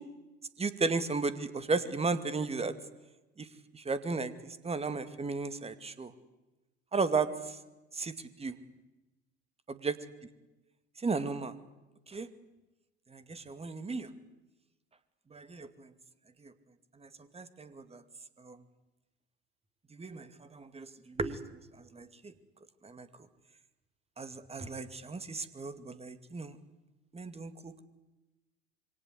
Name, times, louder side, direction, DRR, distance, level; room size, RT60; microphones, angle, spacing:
voice 1, 0.6-2.7 3.4-3.5 3.7-6.1 6.9-7.6 7.9-8.1 8.4-8.5 9.7-10.0 11.0-11.5 12.1-12.3 13.1-14.1 15.3-15.9 16.4-16.5 17.0-18.0 18.4-18.6 19.9-21.4 21.9-22.3 22.8-23.1 24.2-26.6 27.1-27.8, right 4 dB, 15° right, 12 dB, 2.4 m, -35 dB
27.0 x 24.0 x 8.1 m, 1.0 s
figure-of-eight pair, 70°, 35 cm